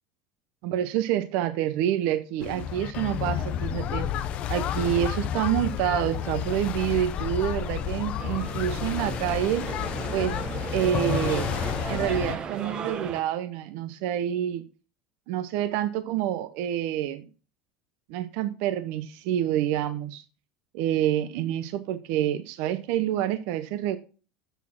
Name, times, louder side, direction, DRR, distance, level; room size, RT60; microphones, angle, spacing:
voice 1, 0.6-4.1 4.5-9.7 10.1-10.4 10.7-11.5 11.9-14.6 15.3-17.3 18.1-20.2 20.7-24.0, right 11 dB, 65° right, 0.8 m, -27 dB
sound 1, 2.4-12.4, left 10 dB, 40° left, 0.7 m, -30 dB
sound 2, 8.2-13.2, right 6 dB, 30° right, 0.9 m, -35 dB
8.1 x 6.3 x 5.9 m
supercardioid pair, 150°, 3 cm